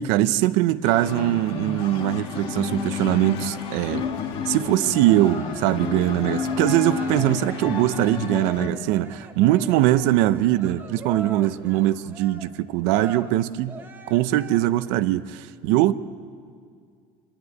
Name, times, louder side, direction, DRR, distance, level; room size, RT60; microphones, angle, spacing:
voice 1, 0.0-4.1 4.5-13.8 14.1-15.9, right 14 dB, 60° right, 14 dB, 0.7 m, -22 dB
sound 1, 0.8-8.7, left 5 dB, 40° left, 1.5 m, -30 dB
Cheering, 4.8-14.9, right 3 dB, 15° right, 0.9 m, -40 dB
25.5 x 12.0 x 9.5 m, 2.2 s
cardioid pair, 180°, 13 cm